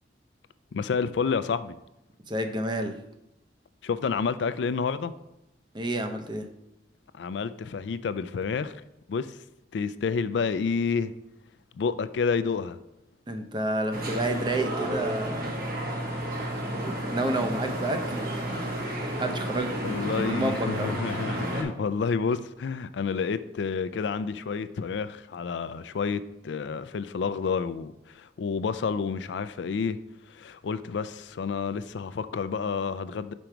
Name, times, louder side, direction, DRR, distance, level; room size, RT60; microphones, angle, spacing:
voice 1, 0.7-1.8 3.8-5.1 7.1-8.7 9.1-9.4 9.7-11.1 11.8-12.8 19.8-30.0 30.3-33.3, left 5 dB, 80° left, 0.4 m, -29 dB
voice 2, 2.3-2.9 5.7-6.5 13.3-15.6 16.8-18.3 19.2-21.0, right 1 dB, 25° right, 0.6 m, -30 dB
sound 1, 13.9-21.6, right 1 dB, 55° right, 1.1 m, -31 dB
5.1 x 4.5 x 5.9 m
head